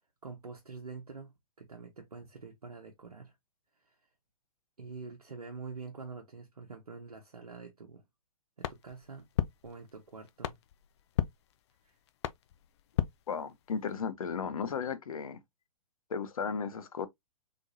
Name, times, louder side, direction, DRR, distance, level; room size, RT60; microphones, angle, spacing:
voice 1, 0.2-3.4 3.8-4.0 4.8-8.0 8.6-9.3 9.6-10.6 11.8-12.0, right 4 dB, 80° right, 1.0 m, -46 dB
sound 1, 8.6-13.9, left 12 dB, 45° left, 0.5 m, -37 dB
voice 2, 13.3-15.4 16.1-17.1, left 6 dB, 70° left, 0.9 m, -35 dB
3.9 x 3.7 x 2.6 m
figure-of-eight pair, 115°, 19 cm